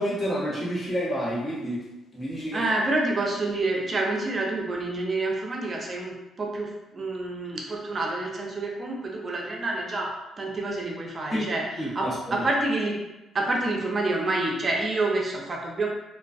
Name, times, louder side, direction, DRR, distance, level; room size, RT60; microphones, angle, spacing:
voice 1, 0.0-1.8 2.1-2.6 11.3-11.4 11.8-12.4, equal, 30° left, -7 dB, 1.0 m, -29 dB
voice 2, 2.5-13.0 13.3-15.9, right 2 dB, 40° right, -1 dB, 0.5 m, -28 dB
2.4 x 2.3 x 2.3 m, 1.0 s
cardioid pair, 90°, 0 cm